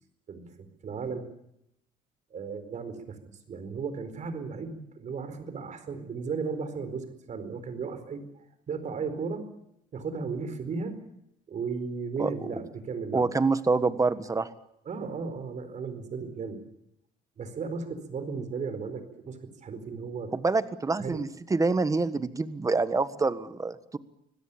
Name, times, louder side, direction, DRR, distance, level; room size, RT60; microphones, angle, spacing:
voice 1, 0.8-1.3 2.3-3.1 3.5-9.4 9.9-11.0 11.5-13.3 14.8-16.6 17.4-20.3 21.0-21.2, right 5 dB, 45° right, 10 dB, 4.5 m, -35 dB
voice 2, 13.1-14.5 20.3-24.0, right 3 dB, 20° right, 13 dB, 1.5 m, -26 dB
25.5 x 17.0 x 8.7 m, 0.78 s
cardioid pair, 110°, 17 cm